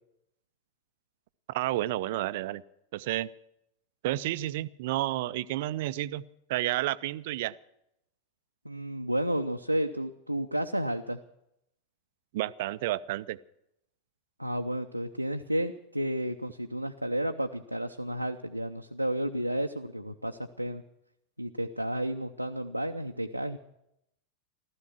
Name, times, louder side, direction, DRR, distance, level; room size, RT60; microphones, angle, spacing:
voice 1, 1.5-2.6 2.9-3.3 4.0-6.2 6.5-7.5 12.3-13.4, right 15 dB, 50° right, 16 dB, 0.5 m, -30 dB
voice 2, 8.6-11.2 14.4-20.8 21.4-23.6, right 1 dB, 90° right, 3 dB, 0.7 m, -32 dB
15.5 x 14.0 x 6.1 m, 0.79 s
figure-of-eight pair, 90°, 0 cm